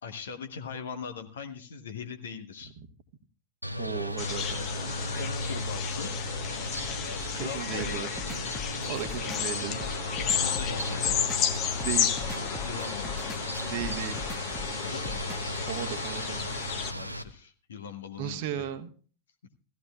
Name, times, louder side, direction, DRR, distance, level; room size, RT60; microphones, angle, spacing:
voice 1, 0.0-2.7 5.2-6.1 7.3-8.1 10.3-11.1 12.6-13.2 14.8-15.3 16.9-18.7, left 6 dB, 65° left, 7 dB, 1.1 m, -40 dB
sound 1, 3.6-17.2, equal, 90° right, 0.8 m, -36 dB
voice 2, 3.8-4.6 7.3-8.1 8.8-9.8 11.8-12.2 13.7-14.3 15.6-16.4 18.2-18.9, right 10 dB, 50° right, 8 dB, 1.1 m, -35 dB
sound 2, 4.2-16.9, left 8 dB, 35° left, 1.1 m, -33 dB
sound 3, 7.8-15.6, left 3 dB, 5° left, 1.2 m, -40 dB
16.5 x 14.5 x 2.3 m, 0.41 s
figure-of-eight pair, 90°, 0 cm